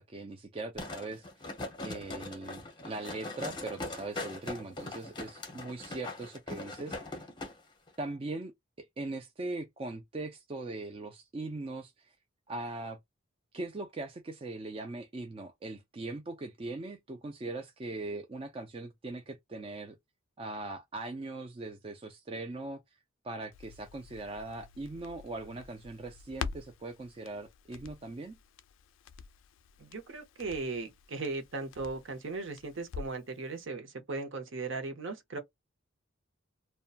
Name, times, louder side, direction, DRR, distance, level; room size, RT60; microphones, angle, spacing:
voice 1, 0.0-1.5 1.8-7.2 8.0-8.5 8.8-12.1 12.5-13.0 13.5-20.0 20.4-22.8 23.2-28.4, right 2 dB, 25° right, 0.3 m, -40 dB
sound 1, 0.8-7.5 7.9-8.0, left 2 dB, 20° left, 0.7 m, -41 dB
Crackle, 23.5-33.3 33.6-33.7, left 6 dB, 70° left, 0.3 m, -47 dB
voice 2, 29.8-35.4, right 3 dB, 65° right, 0.7 m, -37 dB
2.6 x 2.2 x 2.4 m
head